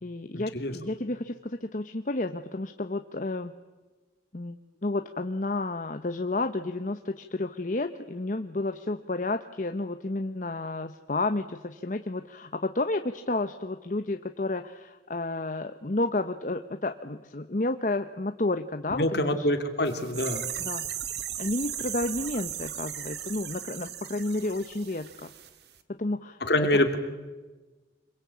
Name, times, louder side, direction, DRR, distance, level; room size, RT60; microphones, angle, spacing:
voice 1, 0.0-3.5 4.3-19.5 20.6-20.9 21.4-25.3 26.0-26.4 26.7-26.8, left 2 dB, 45° left, 8 dB, 0.9 m, -31 dB
voice 2, 18.9-20.4 26.4-27.0, left 1 dB, 65° left, 6 dB, 3.0 m, -25 dB
sound 1, 19.8-25.5 25.7-25.8, right 10 dB, 65° right, 1.7 m, -36 dB
26.5 x 22.5 x 8.6 m, 1.2 s
head